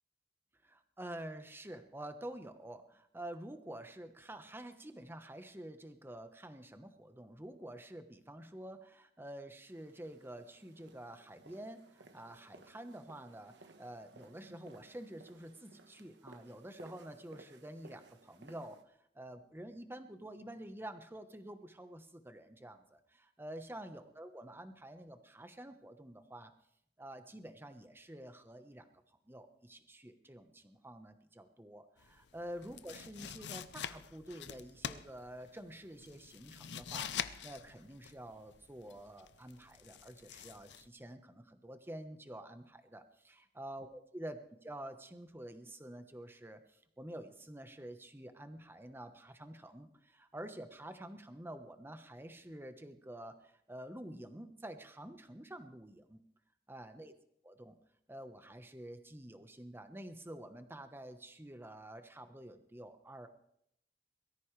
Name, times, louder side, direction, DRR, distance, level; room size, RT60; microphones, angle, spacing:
voice 1, 0.6-26.5 27.0-28.9 29.3-56.2 56.7-57.1 57.4-57.8 58.1-63.3, right 1 dB, 15° right, 8 dB, 1.1 m, -49 dB
sound 1, 9.7-18.8, right 3 dB, 80° right, 1.3 m, -60 dB
sound 2, 32.0-40.9, left 8 dB, 75° left, 0.6 m, -45 dB
22.0 x 14.0 x 3.3 m, 0.73 s
head